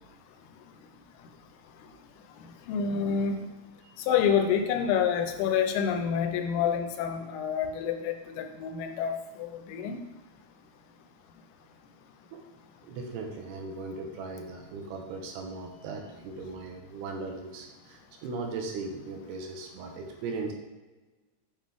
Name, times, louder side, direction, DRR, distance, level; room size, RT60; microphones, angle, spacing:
voice 1, 2.6-3.5 4.0-10.0, left 7 dB, 85° left, 6 dB, 2.6 m, -28 dB
voice 2, 12.8-20.5, right 3 dB, 85° right, 2 dB, 3.0 m, -38 dB
7.3 x 5.9 x 3.5 m, 1.2 s
omnidirectional pair, 4.5 m